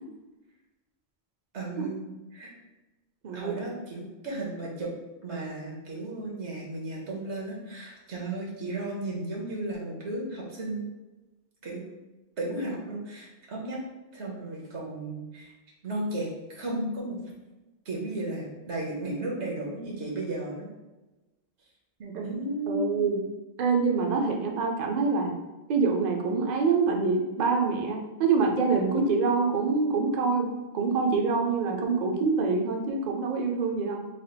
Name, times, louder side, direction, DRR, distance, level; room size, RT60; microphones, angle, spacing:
voice 1, 1.5-2.5 3.3-4.9 5.2-10.9 11.6-11.8 12.4-13.8 14.1-15.5 15.8-17.2 17.8-20.7 22.2-23.0, right 2 dB, 80° right, -2 dB, 1.2 m, -34 dB
voice 2, 3.2-3.7 22.0-22.2 22.7-23.2 23.6-25.3 25.7-30.5 30.7-34.0, right 4 dB, 55° right, 1 dB, 0.5 m, -25 dB
3.3 x 2.4 x 3.9 m, 1.1 s
omnidirectional pair, 1.1 m